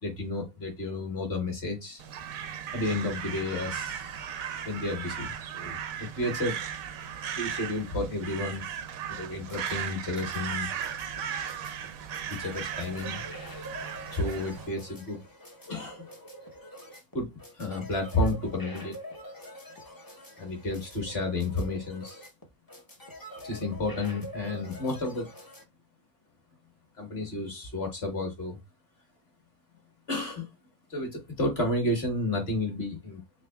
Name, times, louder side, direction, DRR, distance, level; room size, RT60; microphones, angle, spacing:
voice 1, 0.0-2.0 2.7-4.2 4.6-6.6 7.4-8.6 9.2-10.7 12.3-13.2 14.1-15.2 15.7-16.0 17.1-19.0 20.4-22.2 23.4-25.3 27.0-28.6 30.1-30.5 30.9-33.2, left 2 dB, 45° left, 2 dB, 1.6 m, -31 dB
Crow, 2.0-14.7, right 8 dB, 70° right, 1.0 m, -37 dB
sound 1, 9.2-25.6, equal, 20° left, 0.5 m, -46 dB
4.0 x 3.8 x 2.2 m, 0.20 s
omnidirectional pair, 1.6 m